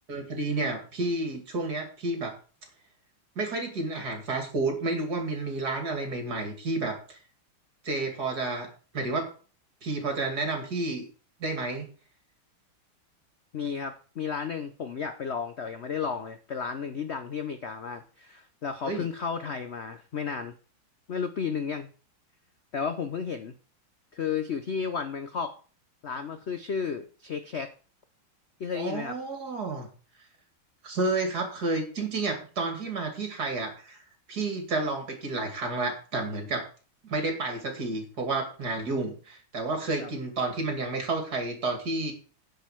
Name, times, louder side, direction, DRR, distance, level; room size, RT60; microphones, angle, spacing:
voice 1, 0.1-2.3 3.4-7.2 7.8-8.7 8.9-9.3 9.8-11.0 11.4-11.9 18.8-19.1 28.7-29.9 30.8-34.0 34.3-36.7 37.0-42.1, right 3 dB, 50° right, 4 dB, 3.1 m, -30 dB
voice 2, 13.5-20.5 21.1-21.9 22.7-23.5 24.1-25.6 26.0-27.7 28.6-29.1 40.0-40.1, left 6 dB, 70° left, 9 dB, 0.6 m, -33 dB
9.9 x 5.4 x 7.6 m, 0.38 s
omnidirectional pair, 2.3 m